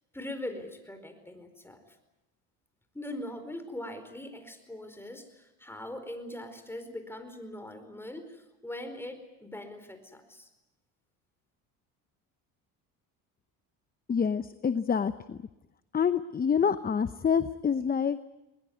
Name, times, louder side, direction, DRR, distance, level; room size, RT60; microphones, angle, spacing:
voice 1, 0.1-1.8 2.9-10.5, left 1 dB, 5° left, 7 dB, 4.7 m, -41 dB
voice 2, 14.1-15.4 15.9-18.3, left 7 dB, 25° left, 12 dB, 0.9 m, -27 dB
21.0 x 21.0 x 9.5 m, 0.95 s
supercardioid pair, 95°, 37 cm